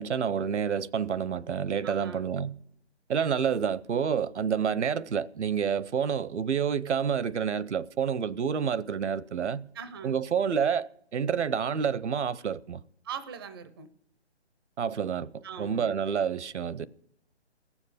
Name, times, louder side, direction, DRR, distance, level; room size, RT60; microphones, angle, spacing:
voice 1, 0.0-2.6 3.1-9.7 10.0-12.8 14.8-16.9, right 7 dB, 80° right, 0.7 m, -28 dB
voice 2, 1.8-2.2 9.7-10.2 13.0-13.9 15.4-16.0, right 6 dB, 20° right, 0.4 m, -41 dB
16.5 x 7.2 x 8.6 m
figure-of-eight pair, 145°, 34 cm